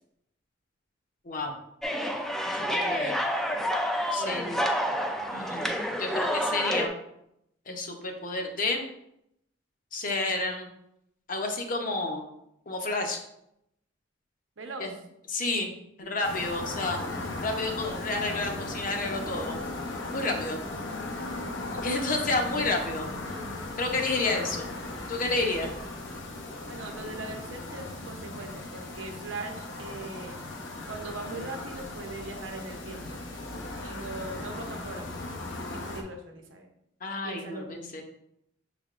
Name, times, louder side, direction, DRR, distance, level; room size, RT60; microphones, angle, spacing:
sound 1, 1.8-6.9, equal, ahead, 0.3 m, -29 dB
voice 1, 2.4-3.2 4.1-4.6 5.3-6.9 7.7-8.8 9.9-10.7 11.3-12.2 12.7-13.2 14.8-14.9 15.3-15.7 16.0-19.6 20.1-20.6 21.8-23.1 23.8-24.7 25.1-25.7 37.0-38.0, left 2 dB, 45° left, 3 dB, 0.7 m, -30 dB
voice 2, 4.2-4.7 14.6-15.0 26.7-30.5 30.9-33.2 33.8-36.7 37.2-37.9, right 2 dB, 80° right, 3 dB, 0.8 m, -41 dB
sound 2, 16.2-36.0, left 2 dB, 80° left, 0.7 m, -37 dB
6.4 x 3.4 x 2.4 m, 0.78 s
head